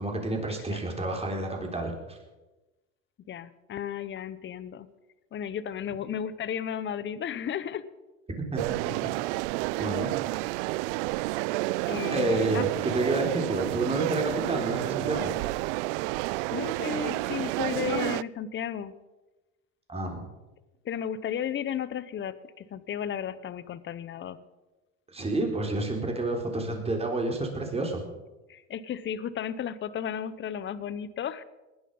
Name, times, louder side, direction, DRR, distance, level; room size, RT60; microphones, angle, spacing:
voice 1, 0.0-2.2 8.5-8.9 9.8-10.1 12.1-15.4 19.9-20.3 25.1-28.0, right 2 dB, 15° right, 2 dB, 4.0 m, -29 dB
voice 2, 3.3-4.9 5.3-7.8 11.9-12.7 16.5-18.9 20.8-24.4 28.5-31.4, left 9 dB, 35° left, 15 dB, 1.0 m, -34 dB
sound 1, 8.6-18.2, right 21 dB, 75° right, 0.5 m, -30 dB
19.5 x 11.0 x 5.6 m, 1.1 s
supercardioid pair, 105°, 35 cm